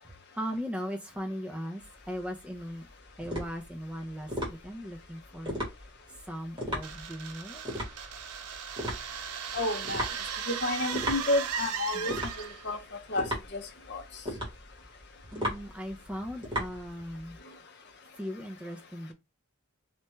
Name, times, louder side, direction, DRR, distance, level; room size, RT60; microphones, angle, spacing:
voice 1, 0.1-2.9 3.2-5.9 6.2-7.6 11.9-12.1 15.3-17.4 18.2-19.1, equal, 5° right, 0.4 m, -38 dB
sound 1, 1.8-17.4, equal, 20° right, 1.2 m, -37 dB
sound 2, 6.8-12.7, right 7 dB, 85° right, 0.5 m, -37 dB
voice 2, 9.5-10.1 10.5-12.8 13.1-13.3 13.5-13.6 13.9-14.0, left 2 dB, 50° left, 0.6 m, -30 dB
3.2 x 2.3 x 3.0 m
head